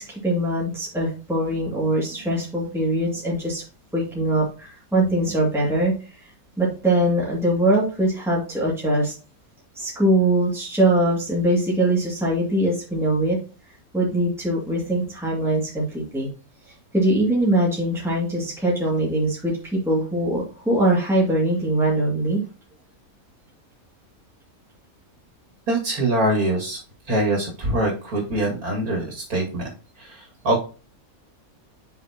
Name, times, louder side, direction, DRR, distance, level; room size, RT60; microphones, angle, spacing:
voice 1, 0.0-3.6 3.9-5.9 6.6-9.1 9.8-13.4 13.9-16.3 16.9-22.4, right 1 dB, ahead, -4 dB, 2.2 m, -22 dB
voice 2, 25.7-26.8 27.1-29.7 30.0-30.6, right 1 dB, 80° right, -1 dB, 2.8 m, -23 dB
8.4 x 5.9 x 2.9 m, 0.36 s
omnidirectional pair, 1.5 m